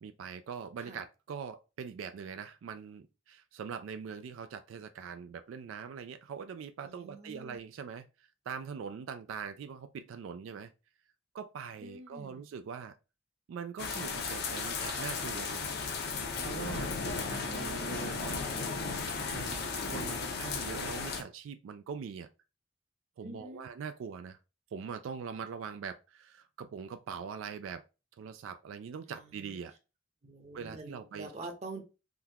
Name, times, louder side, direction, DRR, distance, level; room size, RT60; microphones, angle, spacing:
voice 1, 0.0-10.7 11.3-13.0 13.5-15.7 16.4-18.8 19.3-22.3 23.2-24.4 24.7-27.8 28.2-29.7 30.5-31.3, right 6 dB, 85° right, 0.3 m, -42 dB
voice 2, 6.8-7.6 11.8-12.4 16.8-18.4 23.2-23.7 29.1-29.6 30.2-31.8, right 2 dB, 35° right, 0.7 m, -47 dB
sound 1, 13.8-21.2, left 4 dB, 55° left, 0.6 m, -35 dB
3.7 x 2.3 x 2.8 m
head